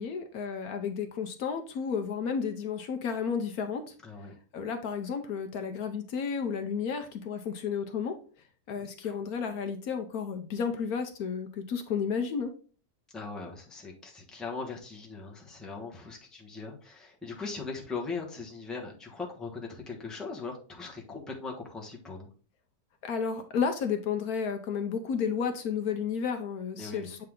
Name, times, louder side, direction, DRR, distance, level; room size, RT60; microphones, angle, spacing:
voice 1, 0.0-3.9 4.5-8.1 8.7-12.5 23.0-27.2, left 6 dB, 70° left, 6 dB, 1.1 m, -32 dB
voice 2, 4.0-4.3 8.8-9.2 13.1-22.3 26.8-27.1, left 4 dB, ahead, -1 dB, 0.9 m, -40 dB
7.8 x 3.4 x 3.6 m, 0.40 s
omnidirectional pair, 1.8 m